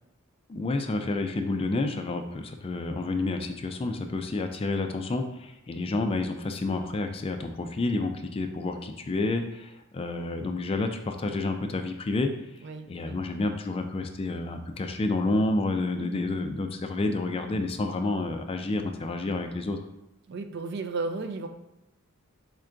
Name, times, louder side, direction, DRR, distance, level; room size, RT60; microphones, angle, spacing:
voice 1, 0.5-12.3 12.9-19.8, left 2 dB, 25° left, 6 dB, 0.3 m, -29 dB
voice 2, 12.6-13.2 16.0-16.3 20.3-21.5, right 3 dB, 50° right, 7 dB, 0.4 m, -34 dB
4.4 x 2.5 x 4.4 m, 0.92 s
head